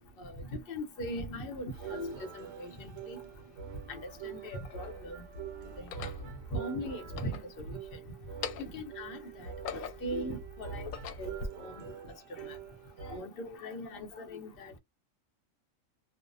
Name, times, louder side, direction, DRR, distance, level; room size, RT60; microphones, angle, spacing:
voice 1, 0.2-3.2 3.9-5.2 5.8-6.1 6.5-7.8 8.6-10.9 11.2-11.9 12.3-12.6 13.0-14.8, equal, 55° left, 0.7 m, -40 dB
sound 1, 1.7-13.2, right 7 dB, 75° right, 1.1 m, -45 dB
sound 2, 3.2-3.3 4.2-5.0 5.7-6.3 7.0-7.9 8.3-8.9 9.3-10.2 10.7-11.5, left 6 dB, 85° left, 1.0 m, -42 dB
2.6 x 2.0 x 2.5 m
omnidirectional pair, 1.3 m